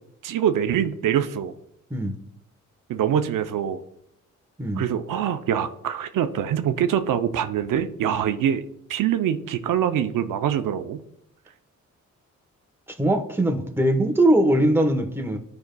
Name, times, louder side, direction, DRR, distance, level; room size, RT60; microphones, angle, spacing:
voice 1, 0.2-1.5 2.9-3.8 4.8-8.6 8.9-11.0, right 9 dB, 85° right, 9 dB, 0.6 m, -24 dB
voice 2, 12.9-15.4, right 1 dB, 5° right, 4 dB, 1.0 m, -21 dB
12.0 x 5.2 x 2.2 m, 0.76 s
cardioid pair, 95°, 31 cm